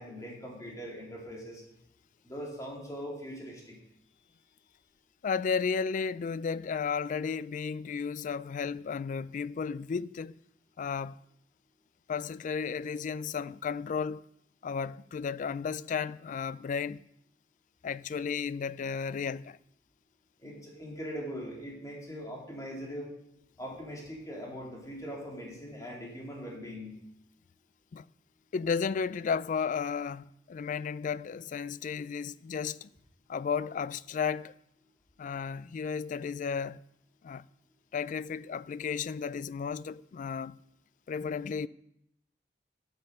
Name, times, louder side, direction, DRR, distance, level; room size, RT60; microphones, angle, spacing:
voice 1, 0.0-1.6 2.2-3.8 20.4-23.1 23.6-26.9, equal, 20° left, 2.9 m, -41 dB
voice 2, 5.2-10.3 10.8-11.2 12.1-14.2 14.6-17.0 17.8-19.6 27.9-28.0 28.5-32.9 33.3-34.5 35.2-36.8 37.2-37.5 37.9-40.6 41.1-41.7, left 6 dB, 45° left, 0.3 m, -33 dB
9.0 x 7.7 x 6.6 m
head